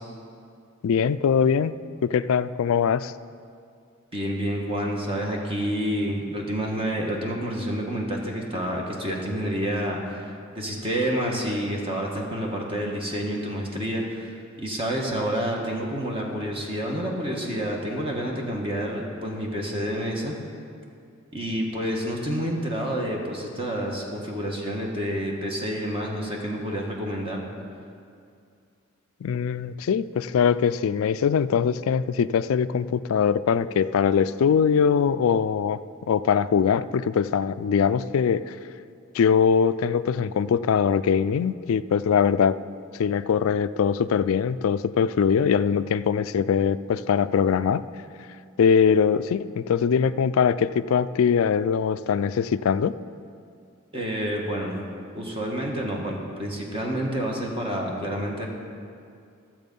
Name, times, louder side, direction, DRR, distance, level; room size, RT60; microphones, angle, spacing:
voice 1, 0.8-1.8 2.0-3.1 29.2-38.6 39.1-42.6 43.0-47.8 48.6-53.0, left 7 dB, 80° left, 14 dB, 0.3 m, -22 dB
voice 2, 4.1-14.3 14.6-20.3 21.3-27.4 53.9-54.8 55.1-58.5, equal, 25° right, -1 dB, 1.3 m, -29 dB
13.5 x 7.4 x 5.3 m, 2.4 s
head